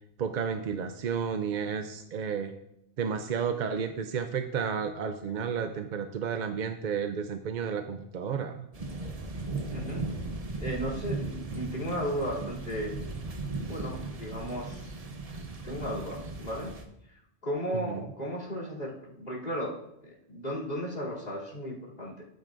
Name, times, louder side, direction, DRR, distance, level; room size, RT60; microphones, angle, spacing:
voice 1, 0.2-2.5 3.0-8.7 17.8-18.0, right 6 dB, 55° right, 7 dB, 0.6 m, -32 dB
sound 1, 8.7-16.9, right 3 dB, 35° right, 0.9 m, -37 dB
voice 2, 9.7-10.1 10.6-12.9 13.6-14.8 15.6-16.7 17.4-19.8 20.0-22.2, equal, 45° left, -3 dB, 3.3 m, -35 dB
13.0 x 9.3 x 2.6 m, 0.78 s
omnidirectional pair, 1.2 m